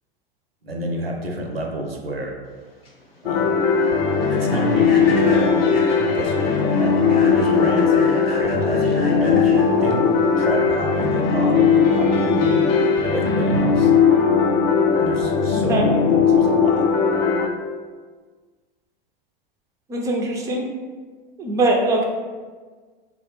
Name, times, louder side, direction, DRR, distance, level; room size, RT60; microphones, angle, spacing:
voice 1, 0.6-2.3 3.2-3.6 4.3-10.1 10.4-12.8 13.0-13.9 15.0-16.9, right 1 dB, 85° right, 2 dB, 0.6 m, -29 dB
Human voice / Train, 2.5-11.4, left 2 dB, 90° left, 0.7 m, -37 dB
sound 1, 3.3-17.5, left 5 dB, 50° left, 0.4 m, -18 dB
voice 2, 19.9-20.6 21.4-22.1, right 2 dB, 10° right, 1 dB, 0.3 m, -21 dB
3.8 x 2.0 x 2.9 m, 1.4 s
figure-of-eight pair, 90°, 29 cm